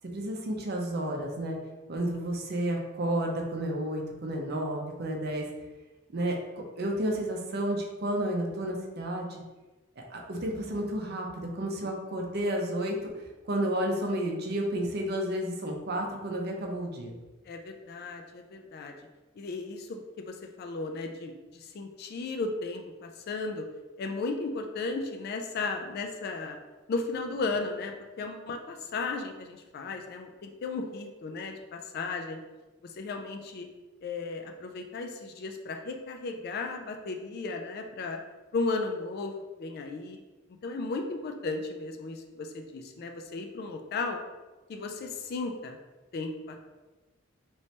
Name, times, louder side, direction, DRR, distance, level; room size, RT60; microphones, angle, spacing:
voice 1, 0.1-1.6 1.9-5.4 6.1-9.4 10.0-17.1, right 1 dB, 55° right, 1 dB, 0.6 m, -31 dB
voice 2, 17.4-19.0 19.4-23.7 24.0-26.6 26.9-32.4 32.8-33.7 34.0-38.2 38.5-39.3 39.6-40.2 40.6-44.2 44.7-45.8 46.1-46.6, left 3 dB, 50° left, 4 dB, 0.3 m, -35 dB
3.2 x 3.1 x 2.8 m, 1.2 s
head